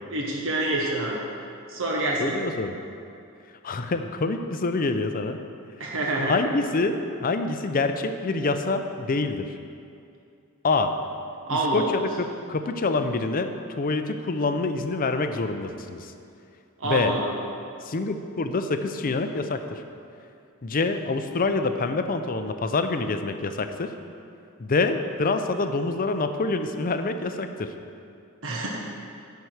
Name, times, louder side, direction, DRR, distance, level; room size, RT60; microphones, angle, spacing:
voice 1, 0.1-1.2 1.7-2.3 5.8-6.3 11.5-11.9 16.8-17.3 28.4-28.7, right 2 dB, 60° right, -2 dB, 1.2 m, -26 dB
voice 2, 2.2-2.7 3.6-5.4 6.2-9.5 10.6-10.9 11.5-16.1 16.8-17.1 17.8-19.8 20.6-23.9 24.6-27.7, left 3 dB, 40° left, 8 dB, 0.5 m, -26 dB
10.0 x 4.7 x 7.9 m, 2.5 s
head